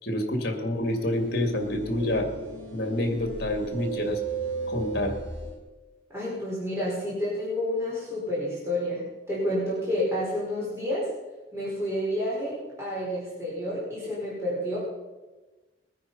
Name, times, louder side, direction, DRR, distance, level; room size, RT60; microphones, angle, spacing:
voice 1, 0.0-2.3 2.7-4.2 4.7-5.1, left 1 dB, 50° left, 4 dB, 2.4 m, -27 dB
sound 1, 0.9-5.6, right 4 dB, 75° right, 3.8 m, -35 dB
voice 2, 6.1-11.1 11.5-14.8, equal, 15° right, -7 dB, 4.7 m, -29 dB
21.0 x 9.4 x 5.6 m, 1.2 s
head